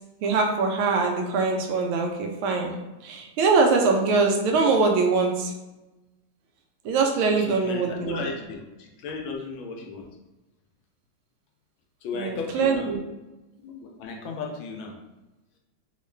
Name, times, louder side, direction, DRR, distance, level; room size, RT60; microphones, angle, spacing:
voice 1, 0.2-2.7 3.0-5.5 6.8-8.3 12.1-13.0, right 4 dB, 85° right, 2 dB, 1.4 m, -23 dB
voice 2, 7.3-10.1 12.0-12.9 13.6-14.9, left 4 dB, 75° left, 1 dB, 1.3 m, -35 dB
3.6 x 2.3 x 3.2 m, 1.0 s
omnidirectional pair, 2.3 m